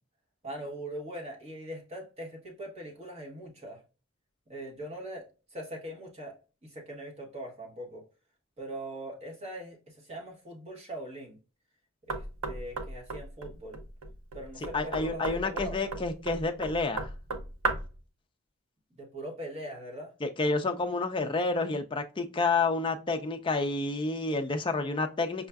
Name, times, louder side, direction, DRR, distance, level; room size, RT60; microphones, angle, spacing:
voice 1, 0.4-3.8 4.5-5.3 5.5-8.0 8.6-11.4 12.1-13.8 14.3-15.8 18.9-20.1, right 1 dB, 30° right, 1.0 m, -41 dB
Knock, 12.1-18.0, right 3 dB, 65° right, 0.6 m, -36 dB
voice 2, 14.7-17.1 20.2-25.5, left 3 dB, 20° left, 0.4 m, -29 dB
5.4 x 2.4 x 2.2 m
head